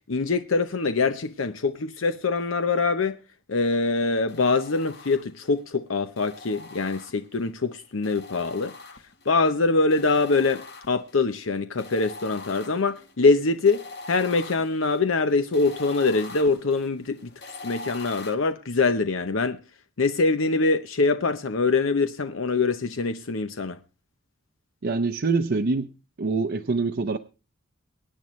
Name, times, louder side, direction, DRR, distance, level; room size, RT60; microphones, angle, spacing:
voice 1, 0.1-3.2 3.5-8.8 9.3-17.3 17.6-19.6 20.0-23.8, left 3 dB, 70° left, 0.8 m, -24 dB
sound 1, 4.3-5.5 6.2-7.5 8.0-9.4 9.9-11.2 11.8-18.3, left 3 dB, 55° left, 1.3 m, -42 dB
voice 2, 24.8-25.9 26.2-27.2, right 3 dB, 55° right, 0.7 m, -25 dB
24.0 x 9.3 x 3.1 m
head